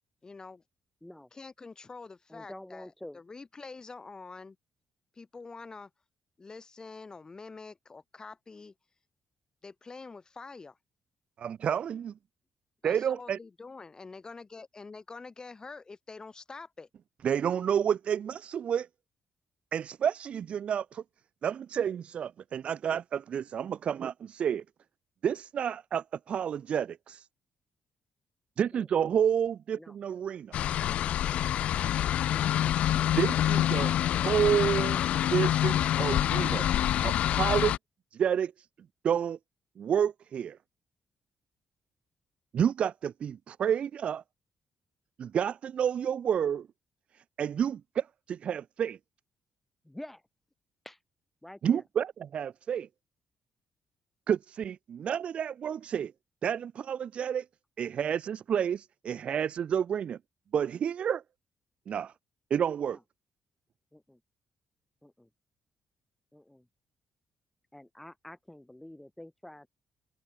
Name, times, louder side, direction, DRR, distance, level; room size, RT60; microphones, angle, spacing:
voice 1, 0.2-0.6 1.3-4.6 5.1-5.9 6.4-8.7 9.6-10.8 12.8-16.9, left 4 dB, 35° left, 2.9 m, -46 dB
voice 2, 2.3-3.2 28.7-29.1 29.8-30.0 32.3-32.5 49.8-50.2 50.8-51.0 51.4-51.8 62.8-63.0 63.9-64.2 65.0-65.3 66.3-66.7 67.7-69.7, left 1 dB, 10° left, 4.6 m, -48 dB
voice 3, 11.4-12.1 12.8-13.4 17.2-18.9 19.7-21.0 21.4-24.6 25.2-27.3 28.6-30.6 33.0-33.9 34.2-35.0 35.3-36.6 37.0-37.7 38.1-38.7 39.0-39.4 39.8-40.6 42.5-44.2 45.2-46.7 47.4-49.0 51.6-52.9 54.3-56.1 56.4-57.5 57.8-60.2 60.5-61.2 61.9-62.1 62.5-63.0, right 8 dB, 65° right, 0.7 m, -30 dB
sound 1, 30.5-37.8, left 11 dB, 75° left, 0.6 m, -26 dB
open air
supercardioid pair, 55°, 2 cm